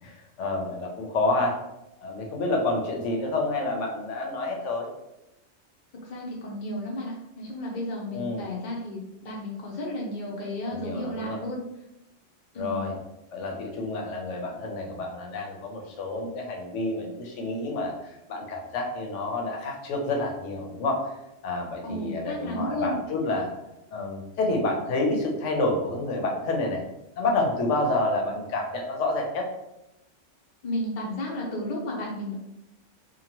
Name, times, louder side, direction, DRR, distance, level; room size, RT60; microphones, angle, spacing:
voice 1, 0.0-1.6 2.0-4.9 8.1-8.4 10.6-11.4 12.6-12.9 13.3-21.1 21.4-23.5 23.9-26.8 27.2-29.5, left 2 dB, 75° left, 1 dB, 1.0 m, -29 dB
voice 2, 6.0-11.6 12.5-12.9 21.8-23.0 30.6-32.3, left 1 dB, 55° left, -3 dB, 0.6 m, -33 dB
2.8 x 2.1 x 2.8 m, 0.88 s
omnidirectional pair, 1.3 m